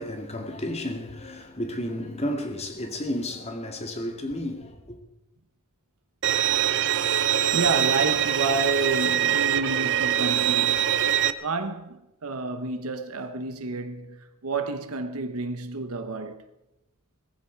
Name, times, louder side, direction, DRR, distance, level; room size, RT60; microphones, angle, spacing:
voice 1, 0.0-5.0, left 1 dB, 30° left, 2.2 m, -32 dB
Bowed string instrument, 6.2-11.3, right 10 dB, 55° right, 0.8 m, -23 dB
voice 2, 7.5-11.0 11.4-16.4, right 3 dB, 75° right, 1.1 m, -30 dB
19.0 x 15.5 x 4.7 m
head